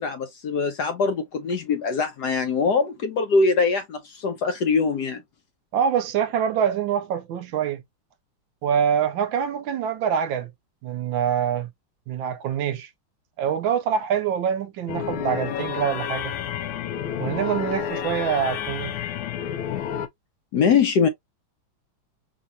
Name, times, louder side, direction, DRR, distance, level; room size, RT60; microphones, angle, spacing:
voice 1, 0.0-5.2 20.5-21.1, left 5 dB, 65° left, 1.1 m, -22 dB
voice 2, 5.7-7.8 8.6-10.5 10.8-11.7 12.1-12.9 13.4-16.3 17.2-19.0, right 8 dB, 75° right, 1.3 m, -25 dB
sound 1, 14.9-20.1, left 9 dB, 85° left, 1.4 m, -30 dB
5.1 x 2.8 x 2.6 m
omnidirectional pair, 2.3 m